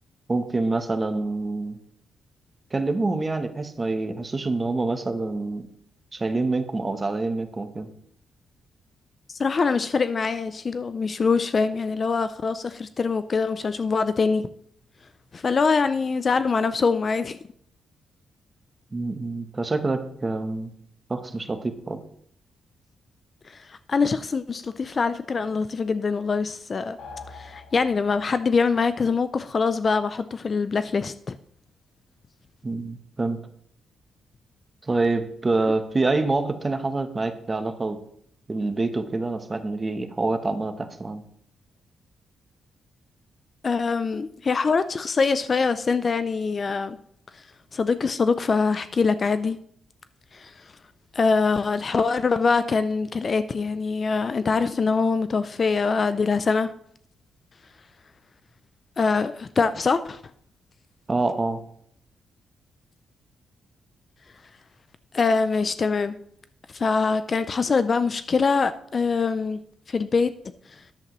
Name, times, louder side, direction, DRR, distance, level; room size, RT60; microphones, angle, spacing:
voice 1, 0.3-1.8 2.7-5.7 6.1-7.9 18.9-20.7 21.1-22.0 32.6-33.4 34.8-38.0 38.5-41.2 61.1-61.6, right 3 dB, 20° right, 0.9 m, -26 dB
voice 2, 9.3-14.5 15.3-17.4 23.5-27.0 27.3-31.4 43.6-47.0 47.3-47.4 47.7-49.6 50.3-50.6 51.1-56.7 59.0-60.2 65.1-66.2 66.7-69.6 69.9-70.3, left 4 dB, 30° left, 0.3 m, -24 dB
sound 1, 27.0-28.5, left 4 dB, 85° left, 1.9 m, -43 dB
13.5 x 10.5 x 3.0 m
wide cardioid pair, 175°, 0 cm